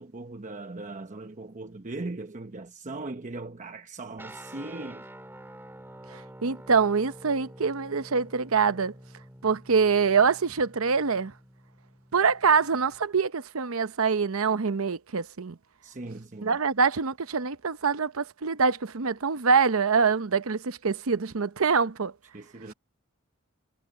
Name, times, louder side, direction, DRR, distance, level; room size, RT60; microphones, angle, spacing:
voice 1, 0.0-5.1 15.8-16.6 22.3-22.7, right 2 dB, 35° right, 1.0 m, -39 dB
sound 1, 4.2-13.1, right 1 dB, 10° right, 2.7 m, -48 dB
voice 2, 6.1-8.9 9.4-11.3 12.1-15.6 16.4-22.1, right 5 dB, 75° right, 0.8 m, -25 dB
head